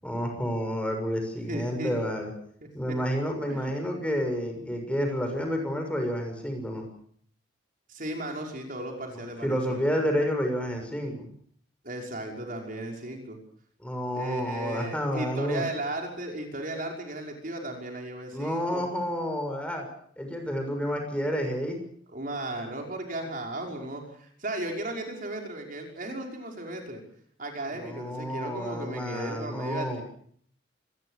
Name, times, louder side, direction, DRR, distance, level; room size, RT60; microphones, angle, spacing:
voice 1, 0.0-2.3 2.7-6.9 9.4-11.3 13.8-15.6 18.3-19.9 20.2-21.8 27.8-30.0, equal, 5° left, 4 dB, 6.7 m, -30 dB
voice 2, 1.5-1.9 3.5-3.7 7.9-9.9 11.8-13.4 14.1-18.9 22.1-27.0 27.4-30.0, right 1 dB, 45° right, 1 dB, 5.6 m, -35 dB
27.0 x 21.5 x 6.7 m, 0.63 s
head